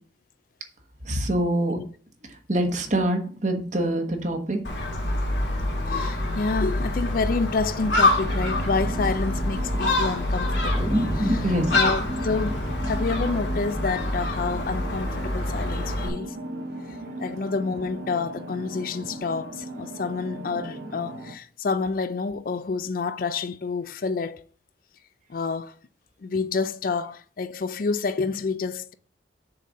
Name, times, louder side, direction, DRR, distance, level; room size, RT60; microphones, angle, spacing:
voice 1, 1.0-1.8 2.2-4.6 11.4-11.8, right 1 dB, 40° right, 1.3 m, -25 dB
Gull seagull, 4.6-16.1, left 1 dB, 80° left, 2.2 m, -26 dB
voice 2, 5.9-11.5 11.7-16.4 17.2-24.4 25.3-25.7 26.2-28.9, left 4 dB, 50° left, 0.4 m, -28 dB
sound 1, 7.8-21.3, right 1 dB, 65° right, 0.8 m, -38 dB
sound 2, 10.7-15.4, equal, 15° right, 0.8 m, -31 dB
6.8 x 4.1 x 6.3 m
head